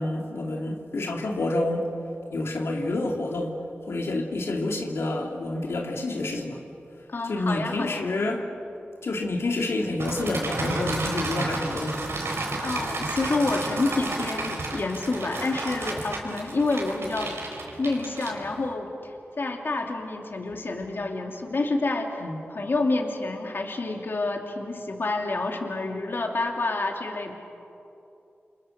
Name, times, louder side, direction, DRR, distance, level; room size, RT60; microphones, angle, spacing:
voice 1, 0.0-1.9 2.3-3.6 3.8-6.6 7.2-8.5 9.0-12.0 22.2-22.4, left 2 dB, 90° left, 1 dB, 2.7 m, -28 dB
voice 2, 7.1-8.0 12.6-17.4 17.8-27.3, left 3 dB, 60° left, 2 dB, 2.6 m, -28 dB
sound 1, 10.0-18.7, right 2 dB, 90° right, 4.9 m, -32 dB
29.0 x 29.0 x 6.6 m, 2.8 s
wide cardioid pair, 100°, 4 cm